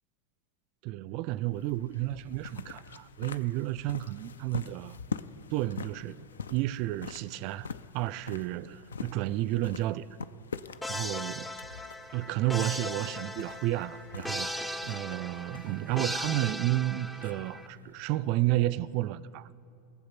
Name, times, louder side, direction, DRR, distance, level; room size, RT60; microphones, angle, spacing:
voice 1, 0.8-5.0 5.5-6.2 6.5-7.7 7.9-10.1 10.9-11.5 12.1-14.5 14.9-19.5, right 16 dB, 50° right, 0.3 m, -31 dB
sound 1, 1.2-18.9, left 5 dB, 80° left, 0.3 m, -45 dB
sound 2, 10.8-17.7, left 1 dB, 10° left, 0.5 m, -38 dB
18.5 x 7.5 x 5.9 m
hypercardioid pair, 90°, 0 cm